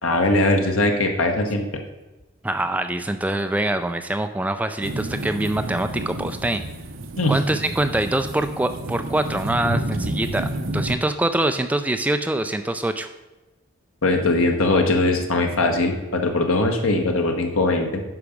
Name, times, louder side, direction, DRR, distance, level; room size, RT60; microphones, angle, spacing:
voice 1, 0.0-1.7 7.2-7.3 14.0-18.0, left 2 dB, 85° left, 4 dB, 1.4 m, -20 dB
voice 2, 2.4-6.6 7.3-13.1, right 1 dB, 5° right, 8 dB, 0.3 m, -24 dB
sound 1, 4.8-11.0, right 1 dB, 75° right, 0.8 m, -30 dB
9.7 x 5.9 x 5.2 m, 1.1 s
head